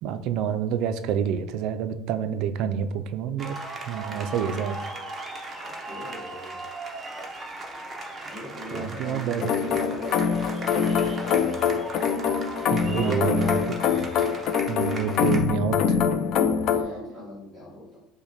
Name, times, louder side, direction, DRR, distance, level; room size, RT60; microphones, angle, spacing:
voice 1, 0.0-4.9 8.7-9.4 12.7-13.6 14.7-16.0, right 8 dB, 55° right, 10 dB, 0.3 m, -28 dB
sound 1, 3.4-15.4, right 2 dB, 15° right, 0.6 m, -38 dB
voice 2, 5.8-6.6 8.2-11.6 12.8-13.8 16.6-18.0, left 1 dB, 10° left, -10 dB, 1.1 m, -37 dB
sound 2, 9.4-16.8, left 7 dB, 45° left, 0.3 m, -24 dB
5.8 x 2.1 x 4.0 m, 0.82 s
cardioid pair, 175°, 0 cm